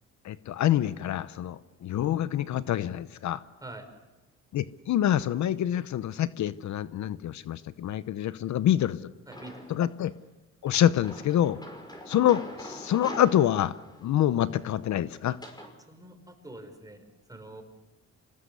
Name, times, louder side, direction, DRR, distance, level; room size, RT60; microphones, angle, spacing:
voice 1, 0.2-3.4 4.5-9.1 9.7-10.1 10.6-11.6 12.1-13.7 14.0-15.4, left 11 dB, 70° left, 15 dB, 0.9 m, -26 dB
voice 2, 3.6-3.9 9.3-9.7 15.9-17.0 17.3-17.6, right 2 dB, 10° right, 6 dB, 5.2 m, -45 dB
sound 1, 9.3-9.9 10.7-15.7, left 1 dB, 15° left, 5.5 m, -44 dB
27.0 x 19.0 x 8.2 m, 1.1 s
cardioid pair, 90°, 30 cm